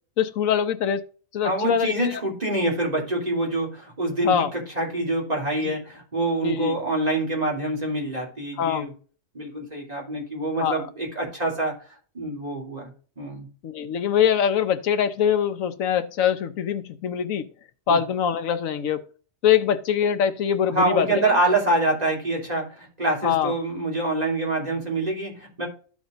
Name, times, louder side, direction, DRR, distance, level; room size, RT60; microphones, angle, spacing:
voice 1, 0.2-1.1 1.3-1.9 4.2-4.5 5.6-5.8 6.4-6.7 8.6-8.9 10.6-10.8 13.6-17.5 17.9-19.0 19.4-21.3 23.2-23.5, left 8 dB, 90° left, 1.2 m, -23 dB
voice 2, 1.4-8.9 9.3-11.7 12.1-12.9 13.2-13.5 17.9-18.0 20.7-25.7, right 2 dB, 30° right, 3.1 m, -26 dB
14.0 x 4.9 x 2.5 m
omnidirectional pair, 1.4 m